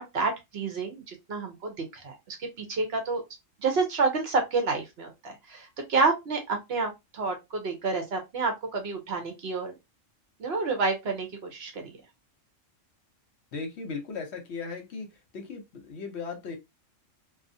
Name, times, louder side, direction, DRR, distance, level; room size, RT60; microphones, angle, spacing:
voice 1, 0.0-3.2 3.6-9.7 10.4-11.8, right 4 dB, 60° right, 0.9 m, -29 dB
voice 2, 13.5-15.1 15.3-16.6, left 4 dB, 65° left, 0.8 m, -37 dB
2.5 x 2.3 x 2.5 m
omnidirectional pair, 1.3 m